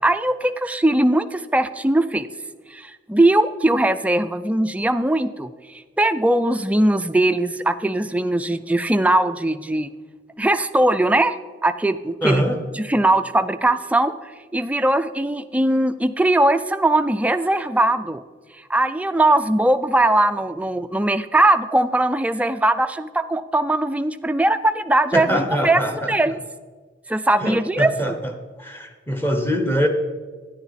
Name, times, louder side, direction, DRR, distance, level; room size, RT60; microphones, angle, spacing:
voice 1, 0.0-2.3 2.7-9.9 10.4-11.4 11.6-12.5 12.7-14.1 14.5-18.2 18.7-25.8 26.1-26.4 27.1-27.9, right 1 dB, 10° right, 10 dB, 0.4 m, -20 dB
voice 2, 12.2-12.6 25.1-26.3 27.4-28.3 28.6-29.9, equal, 15° left, 6 dB, 1.0 m, -23 dB
10.0 x 9.8 x 4.2 m, 1.4 s
head